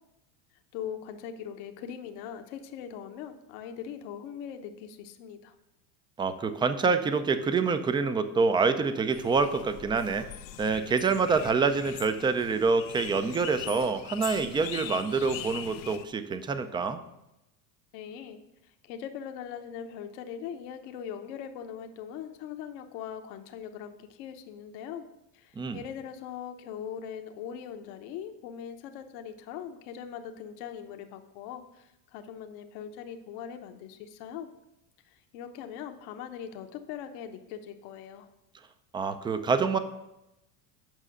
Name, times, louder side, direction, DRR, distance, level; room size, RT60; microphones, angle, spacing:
voice 1, 0.7-5.5 17.9-25.1 25.3-34.5 35.0-38.3, left 8 dB, 70° left, 6 dB, 1.0 m, -41 dB
voice 2, 6.2-10.3 10.6-17.0 25.6-25.8 38.9-39.8, right 4 dB, 10° right, 10 dB, 0.3 m, -26 dB
sound 1, 9.1-16.0, left 12 dB, 90° left, 0.7 m, -42 dB
7.5 x 5.5 x 6.4 m, 0.92 s
supercardioid pair, 100°, 50 cm